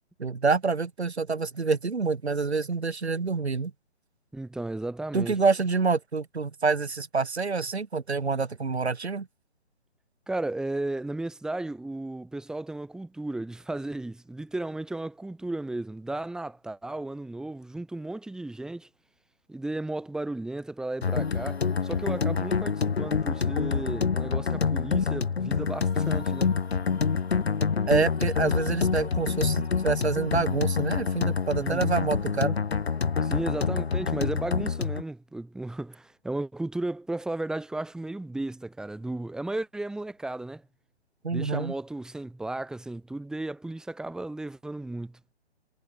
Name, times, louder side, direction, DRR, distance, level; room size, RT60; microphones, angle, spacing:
voice 1, 0.2-3.7 5.1-9.3 27.9-32.6 41.2-41.7, right 4 dB, 70° right, 3.6 m, -27 dB
voice 2, 4.3-5.4 10.3-18.9 19.5-26.5 31.6-31.9 33.2-40.6 41.3-45.2, right 2 dB, ahead, 3.7 m, -34 dB
sound 1, 21.0-35.0, left 5 dB, 70° left, 1.6 m, -27 dB
figure-of-eight pair, 145°, 33 cm